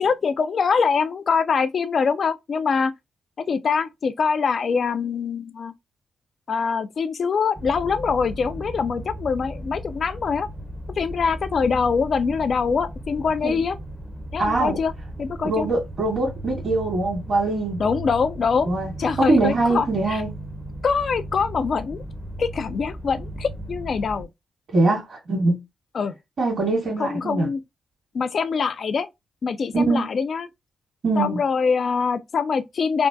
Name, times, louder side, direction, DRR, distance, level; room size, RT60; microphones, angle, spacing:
voice 1, 0.0-2.9 3.5-5.7 6.5-10.5 11.0-13.8 14.3-14.9 15.2-15.7 17.8-18.7 19.0-20.2 20.8-22.0 22.4-24.3 25.9-26.1 27.0-27.6 28.1-29.1 29.4-30.5 31.2-33.1, left 5 dB, 60° left, 0.4 m, -24 dB
sound 1, 7.6-24.3, right 1 dB, 10° right, 0.7 m, -36 dB
voice 2, 14.4-14.8 15.4-17.8 18.7-18.9 19.2-20.3 24.7-25.6 26.4-27.5 29.7-30.1 31.0-31.4, right 2 dB, 60° right, 1.7 m, -22 dB
3.5 x 2.1 x 2.6 m
supercardioid pair, 60°, 0 cm